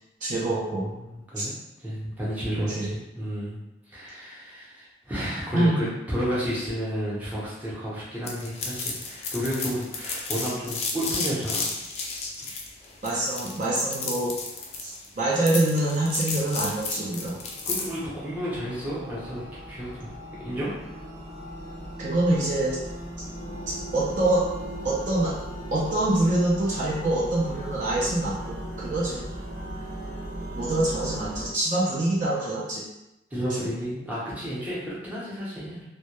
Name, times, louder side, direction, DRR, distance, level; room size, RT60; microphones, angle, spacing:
voice 1, 0.2-0.9 1.4-1.5 2.7-2.9 5.5-5.9 13.0-14.4 14.8-17.4 22.0-22.8 23.7-24.5 24.8-25.4 25.7-29.3 30.5-32.9 33.6-33.7, right 1 dB, 45° right, -6 dB, 0.4 m, -25 dB
voice 2, 0.8-1.5 1.8-3.6 3.9-11.7 17.7-20.2 20.4-20.8 33.3-35.8, equal, 10° right, -8 dB, 0.7 m, -32 dB
sound 1, 8.3-18.0, left 4 dB, 35° left, 0.3 m, -32 dB
sound 2, 16.1-31.5, right 1 dB, 90° right, 0.7 m, -38 dB
2.2 x 2.1 x 2.9 m, 0.93 s
head